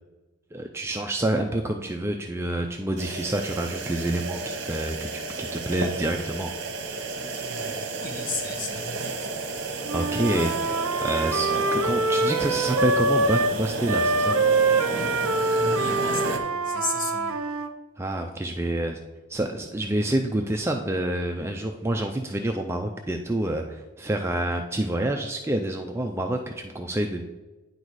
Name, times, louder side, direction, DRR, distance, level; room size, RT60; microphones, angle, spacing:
voice 1, 0.5-6.5 9.9-14.4 18.0-19.0 19.3-27.2, right 1 dB, 10° right, 0.3 m, -28 dB
sound 1, 3.0-16.4, right 3 dB, 55° right, 0.9 m, -32 dB
voice 2, 7.9-9.0 14.8-17.5, left 3 dB, 40° left, 1.1 m, -35 dB
Wind instrument woodwind instrument, 9.8-13.6 13.9-17.7, right 2 dB, 80° right, 0.6 m, -24 dB
9.6 x 4.0 x 4.7 m
head